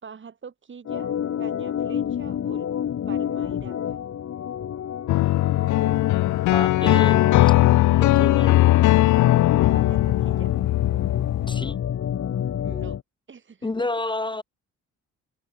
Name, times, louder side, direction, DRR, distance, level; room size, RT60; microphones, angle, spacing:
voice 1, 0.0-2.7 3.1-4.0 9.7-10.5 12.6-13.0 13.3-13.9, right 6 dB, 40° right, 3.4 m, -44 dB
Organ, 0.9-13.0, left 9 dB, 55° left, 1.8 m, -28 dB
sound 1, 5.1-11.5, left 16 dB, 75° left, 0.6 m, -19 dB
voice 2, 6.5-7.5 8.0-8.6 11.5-11.7 13.6-14.4, left 2 dB, 15° left, 1.4 m, -29 dB
open air
cardioid pair, 90°, 30 cm